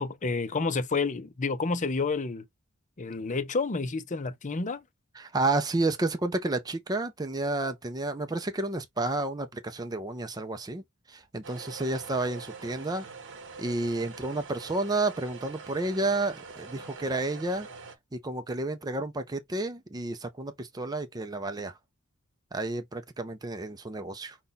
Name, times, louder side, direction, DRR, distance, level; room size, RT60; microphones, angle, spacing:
voice 1, 0.0-2.4 3.0-4.8, left 4 dB, 35° left, 0.6 m, -29 dB
voice 2, 5.1-13.1 13.6-17.7 18.1-21.8 22.5-24.4, right 2 dB, 15° right, 0.5 m, -31 dB
sound 1, 11.4-18.0, right 5 dB, 55° right, 0.9 m, -44 dB
5.3 x 2.3 x 4.0 m
head